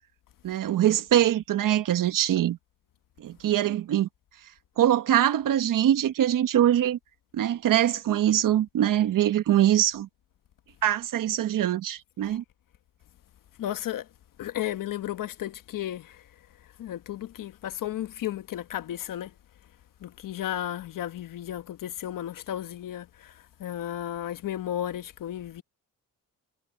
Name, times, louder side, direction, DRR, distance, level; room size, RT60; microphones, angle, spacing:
voice 1, 0.4-2.6 3.2-4.1 4.8-7.0 7.3-10.1 10.8-12.4, right 11 dB, 65° right, 1.3 m, -23 dB
voice 2, 13.6-14.1 14.4-16.2 16.8-19.3 20.0-23.3 23.6-25.6, left 12 dB, 65° left, 1.2 m, -34 dB
cardioid pair, 110°, 35 cm